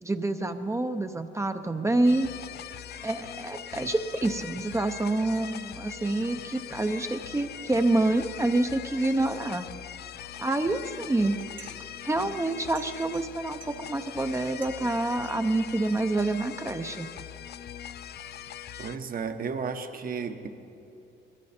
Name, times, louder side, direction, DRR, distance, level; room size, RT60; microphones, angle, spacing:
voice 1, 0.0-2.3 3.0-9.6 10.4-11.4 12.0-17.1, right 2 dB, 15° right, 7 dB, 0.7 m, -27 dB
sound 1, 2.0-19.0, left 10 dB, 55° left, 0.5 m, -41 dB
sound 2, 11.1-16.3, right 5 dB, 90° right, 1.8 m, -54 dB
voice 2, 18.8-20.5, right 5 dB, 45° right, 8 dB, 1.1 m, -33 dB
20.0 x 14.5 x 4.4 m, 2.8 s
cardioid pair, 90°, 20 cm